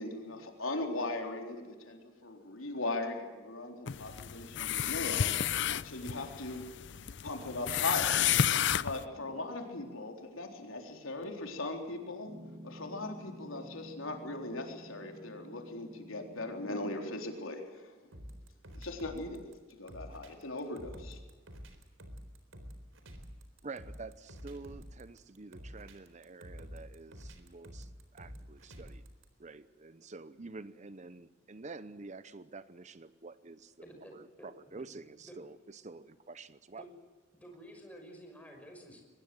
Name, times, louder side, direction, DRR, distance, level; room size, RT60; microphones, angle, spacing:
voice 1, 0.0-8.3 8.8-17.9 18.8-21.2, left 2 dB, 80° left, 3 dB, 3.9 m, -39 dB
sound 1, 3.9-9.0, left 9 dB, 60° left, 0.6 m, -31 dB
Piano, 12.2-17.3, right 1 dB, 55° right, 2.3 m, -52 dB
sound 2, 18.1-29.2, equal, 75° right, 4.2 m, -48 dB
voice 2, 23.6-29.0 29.4-33.7 34.1-36.8, right 3 dB, 35° right, 14 dB, 0.7 m, -48 dB
voice 3, 33.8-34.9 35.2-35.4 36.8-36.9 37.4-39.0, equal, 5° left, 2 dB, 5.7 m, -51 dB
23.5 x 20.5 x 7.8 m, 1.4 s
head